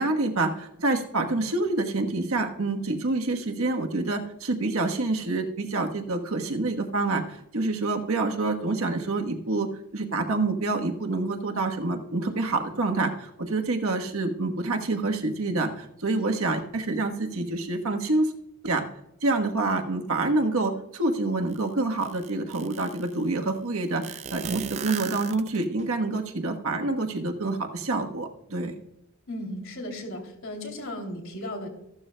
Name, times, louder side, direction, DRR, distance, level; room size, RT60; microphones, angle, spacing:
voice 1, 0.0-18.3 18.6-18.8 19.2-28.7, right 2 dB, 70° right, 4 dB, 1.2 m, -27 dB
sound 1, 21.5-21.6 22.0-23.1 24.0-25.8, right 7 dB, 30° right, 0.3 m, -36 dB
voice 2, 29.3-31.7, left 1 dB, 60° left, 3 dB, 2.8 m, -35 dB
15.0 x 12.5 x 2.2 m, 0.83 s
head